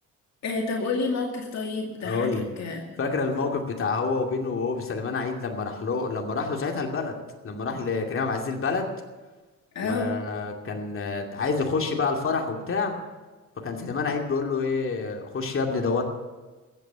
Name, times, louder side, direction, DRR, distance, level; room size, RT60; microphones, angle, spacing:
voice 1, 0.4-2.8 9.7-10.1, left 3 dB, 60° left, 1 dB, 2.4 m, -29 dB
voice 2, 2.0-2.4 3.0-7.2 7.4-8.9 9.8-13.0 13.6-16.0, left 4 dB, 45° left, 1 dB, 2.6 m, -28 dB
14.5 x 9.1 x 9.3 m, 1.3 s
cardioid pair, 90°, 30 cm